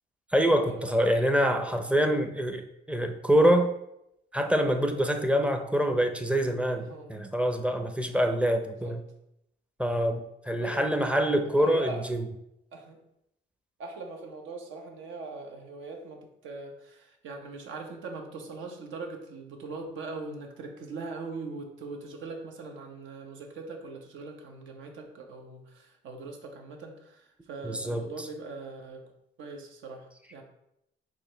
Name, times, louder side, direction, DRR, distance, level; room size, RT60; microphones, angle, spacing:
voice 1, 0.3-3.7 4.3-9.0 9.8-12.2 27.6-28.1, equal, 5° right, 6 dB, 0.5 m, -25 dB
voice 2, 6.7-7.1 8.7-9.0 10.6-10.9 11.5-12.0 12.7-13.0 13.8-29.1 29.4-30.4, right 3 dB, 75° right, 3 dB, 0.9 m, -41 dB
4.8 x 2.5 x 4.4 m, 0.81 s
cardioid pair, 90°, 20 cm